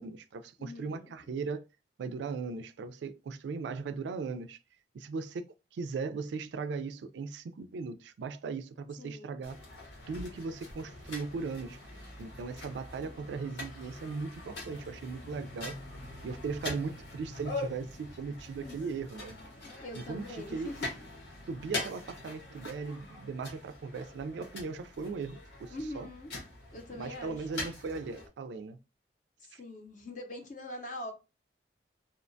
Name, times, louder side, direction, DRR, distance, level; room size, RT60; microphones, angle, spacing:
voice 1, 0.0-1.6 2.0-4.6 4.9-5.5 5.7-9.6 10.1-11.8 12.2-15.8 16.2-19.4 19.9-20.7 21.5-26.1 26.9-28.8 29.5-29.6, right 4 dB, 80° right, 0.3 m, -38 dB
voice 2, 0.6-1.1 9.0-9.4 18.6-18.8 19.6-20.9 25.7-26.3 26.7-27.5 29.4-31.1, left 1 dB, 45° left, 0.6 m, -43 dB
sound 1, 9.4-28.3, left 2 dB, 90° left, 1.1 m, -43 dB
2.7 x 2.1 x 2.5 m
head